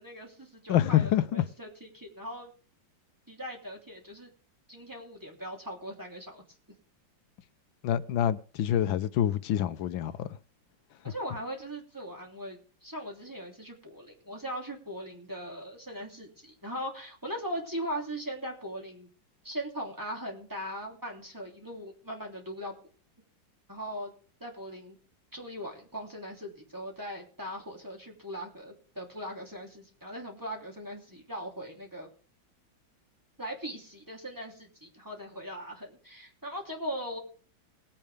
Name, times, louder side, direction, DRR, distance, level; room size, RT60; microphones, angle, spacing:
voice 1, 0.0-2.5 3.3-4.3 4.7-6.4 11.0-19.1 19.4-22.7 23.7-24.1 24.4-25.0 25.3-32.1 33.4-37.2, equal, 10° right, 3.1 m, -39 dB
voice 2, 0.7-1.4 7.8-10.3, left 11 dB, 85° left, 1.5 m, -26 dB
20.0 x 8.8 x 3.4 m
omnidirectional pair, 2.1 m